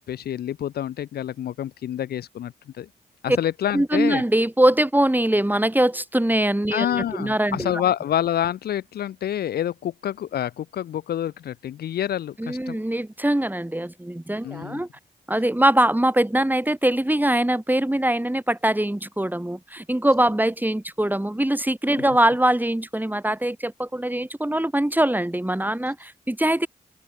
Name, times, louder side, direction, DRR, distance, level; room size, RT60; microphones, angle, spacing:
voice 1, 0.0-2.9 3.2-4.2 6.7-12.8 14.4-14.8, left 11 dB, 75° left, 0.5 m, -27 dB
voice 2, 3.7-7.8 12.4-14.9 15.3-26.7, right 1 dB, 10° right, 3.1 m, -22 dB
open air
supercardioid pair, 40°, 17 cm